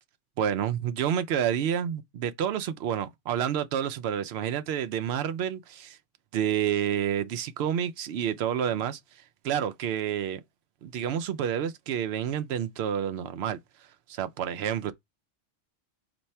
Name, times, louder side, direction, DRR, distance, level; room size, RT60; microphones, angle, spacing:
voice 1, 0.4-6.0 6.3-9.0 9.4-10.4 10.8-13.6 14.1-14.9, right 9 dB, 65° right, 0.7 m, -29 dB
4.4 x 2.6 x 4.2 m
omnidirectional pair, 1.3 m